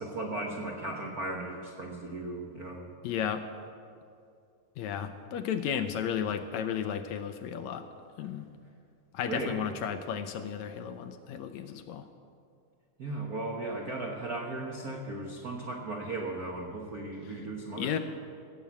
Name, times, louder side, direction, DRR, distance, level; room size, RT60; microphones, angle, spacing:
voice 1, 0.0-2.9 9.3-9.6 13.0-18.0, right 2 dB, 80° right, 0 dB, 0.8 m, -36 dB
voice 2, 3.0-3.4 4.8-7.9 8.2-8.5 9.1-12.1 17.7-18.0, left 8 dB, 75° left, 9 dB, 1.7 m, -33 dB
16.0 x 7.5 x 8.4 m, 2.4 s
omnidirectional pair, 3.5 m